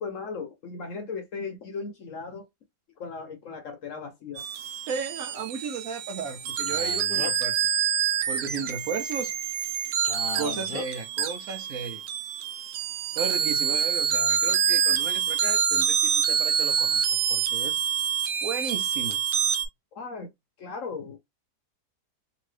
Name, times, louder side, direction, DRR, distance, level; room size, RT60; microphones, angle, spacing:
voice 1, 0.0-2.5 3.0-4.4 13.4-13.5 19.9-20.3 20.6-21.2, left 4 dB, 60° left, 0.9 m, -37 dB
sound 1, 4.4-19.6, right 8 dB, 85° right, 1.2 m, -26 dB
voice 2, 4.9-7.7 8.3-9.3 10.4-12.0 13.2-17.8 18.4-19.2, right 5 dB, 65° right, 1.0 m, -35 dB
Male speech man speaking, 6.7-7.6 10.0-10.9, left 9 dB, 85° left, 1.2 m, -37 dB
2.9 x 2.7 x 3.2 m
omnidirectional pair, 1.8 m